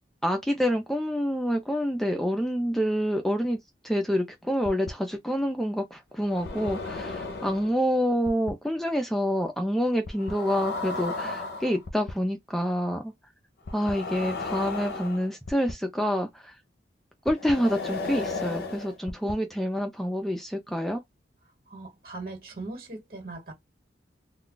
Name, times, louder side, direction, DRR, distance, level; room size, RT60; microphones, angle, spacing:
voice 1, 0.2-3.6 3.8-13.1 13.7-16.5 17.3-21.0, equal, ahead, 0.4 m, -27 dB
sound 1, 4.7-4.9 6.2-7.8 8.3-8.5 10.1-12.1 13.7-15.7 17.3-19.3, left 3 dB, 60° left, 0.6 m, -34 dB
voice 2, 21.7-23.5, right 2 dB, 55° right, 1.4 m, -39 dB
2.3 x 2.2 x 3.7 m
head